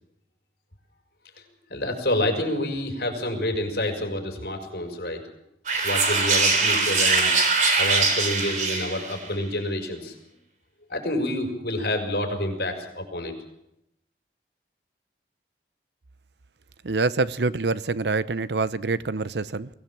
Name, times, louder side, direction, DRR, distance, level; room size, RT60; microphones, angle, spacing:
voice 1, 1.7-5.2 5.8-7.3 7.7-10.1 10.9-13.3, left 1 dB, 65° left, 5.4 m, -28 dB
sound 1, 5.7-9.3, right 4 dB, 45° right, 3.5 m, -22 dB
voice 2, 16.8-19.7, right 3 dB, 80° right, 0.7 m, -26 dB
23.0 x 16.5 x 7.5 m
head